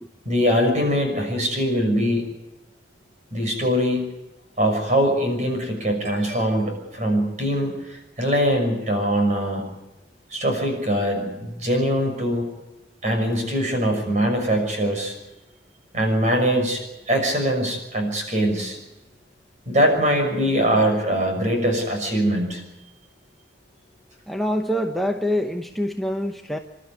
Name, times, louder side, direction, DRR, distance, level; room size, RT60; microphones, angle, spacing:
voice 1, 0.2-2.2 3.3-4.1 4.6-9.7 10.3-12.4 13.0-15.2 15.9-18.8 19.7-22.6, equal, 45° right, 3 dB, 6.2 m, -22 dB
voice 2, 24.3-26.6, equal, ahead, 3 dB, 0.9 m, -25 dB
27.5 x 12.5 x 9.7 m, 1.0 s
head